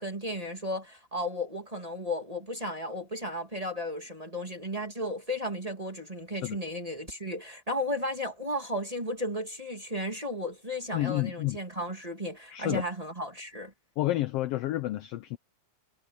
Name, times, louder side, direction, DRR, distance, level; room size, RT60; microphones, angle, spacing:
voice 1, 0.0-13.7, left 1 dB, 15° right, 1.8 m, -34 dB
voice 2, 10.9-11.6 12.5-12.8 14.0-15.4, left 16 dB, 80° left, 1.4 m, -30 dB
omnidirectional pair, 3.3 m